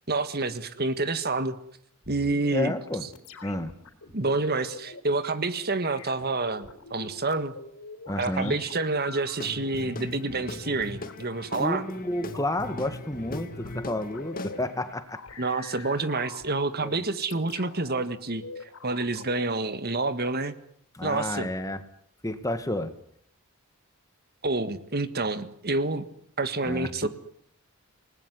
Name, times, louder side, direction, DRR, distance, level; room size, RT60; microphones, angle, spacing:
voice 1, 0.1-1.5 2.1-2.7 4.1-7.5 8.2-11.8 15.4-20.5 21.0-21.5 24.4-26.0 26.4-27.1, right 3 dB, 45° right, 12 dB, 1.7 m, -28 dB
sound 1, 2.0-5.0 5.8-9.8 11.1-11.3 12.3-14.6 15.1-16.8 17.3-18.0 18.4-19.3, left 3 dB, 75° left, 4.1 m, -45 dB
voice 2, 2.5-3.1 3.4-3.7 8.1-8.6 11.6-15.2 16.8-16.9 20.9-21.8 22.2-22.9 26.6-27.1, left 1 dB, 15° left, 10 dB, 1.8 m, -31 dB
Guitar / Drum, 9.4-14.9, left 2 dB, 40° left, 2.2 m, -40 dB
28.5 x 19.5 x 9.8 m, 0.68 s
head